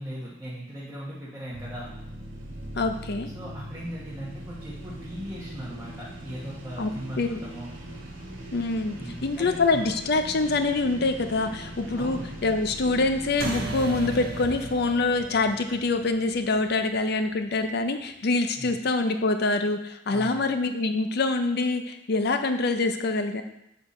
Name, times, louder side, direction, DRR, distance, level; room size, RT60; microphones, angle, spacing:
voice 1, 0.0-1.9 3.3-7.7 9.0-9.9 11.9-12.3 18.6-18.8 20.1-20.4, equal, 15° right, -8 dB, 1.1 m, -38 dB
sound 1, 1.5-14.5, right 1 dB, 80° right, 1.2 m, -41 dB
voice 2, 2.7-3.3 6.8-6.9 7.2-7.4 8.5-23.4, left 3 dB, 55° left, 8 dB, 0.6 m, -25 dB
sound 2, 13.4-18.2, right 3 dB, 50° right, 0.9 m, -37 dB
6.9 x 4.0 x 4.2 m, 0.82 s
head